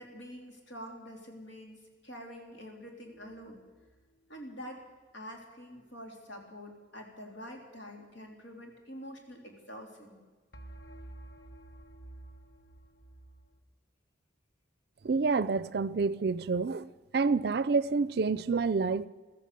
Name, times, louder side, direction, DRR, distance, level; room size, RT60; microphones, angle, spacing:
voice 1, 0.0-3.6 4.3-4.8 5.1-10.2, equal, 80° left, 3.4 m, -46 dB
sound 1, 3.1-4.0 10.5-13.6, right 1 dB, 55° left, 1.3 m, -50 dB
voice 2, 15.0-16.9 17.1-19.1, right 4 dB, 55° right, 0.4 m, -28 dB
15.0 x 13.5 x 6.8 m
head